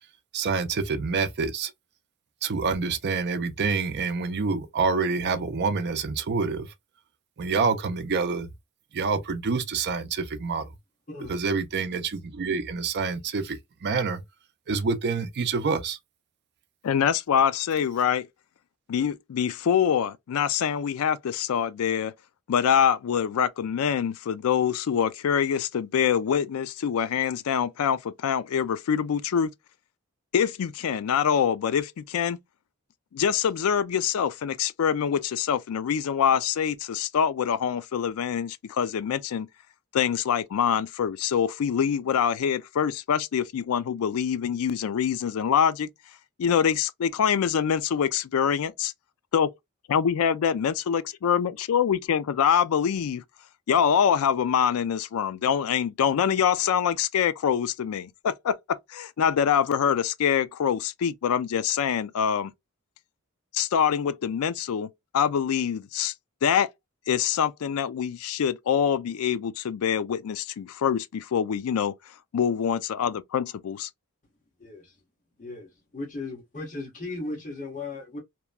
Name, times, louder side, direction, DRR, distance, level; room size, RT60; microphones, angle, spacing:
voice 1, 0.3-1.7 2.4-6.7 7.4-8.5 8.9-10.7 11.3-14.2 14.7-16.0, right 4 dB, 50° right, 0.5 m, -27 dB
voice 2, 16.8-18.3 18.9-22.1 22.5-29.5 30.3-32.4 33.1-39.5 39.9-45.9 46.4-48.9 49.3-49.5 49.9-53.2 53.7-62.5 63.5-64.9 65.1-66.1 66.4-66.7 67.1-72.0 72.3-73.9, left 8 dB, 65° left, 0.3 m, -25 dB
voice 3, 74.6-75.0 75.4-78.2, left 2 dB, 35° left, 1.1 m, -37 dB
2.9 x 2.2 x 2.2 m
head